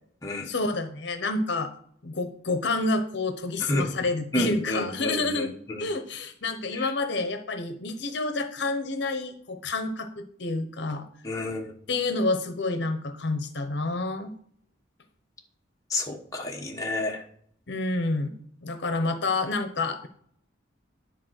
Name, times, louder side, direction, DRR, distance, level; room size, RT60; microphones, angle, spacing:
voice 1, 0.5-1.7 2.0-5.5 5.8-11.1 11.9-14.3 17.7-18.4 18.6-20.1, left 3 dB, 60° left, 8 dB, 0.8 m, -28 dB
voice 2, 4.3-5.9 6.7-6.9 11.2-11.7 15.9-17.2, left 1 dB, 15° left, 0 dB, 1.1 m, -30 dB
10.5 x 4.1 x 6.3 m, 0.63 s
head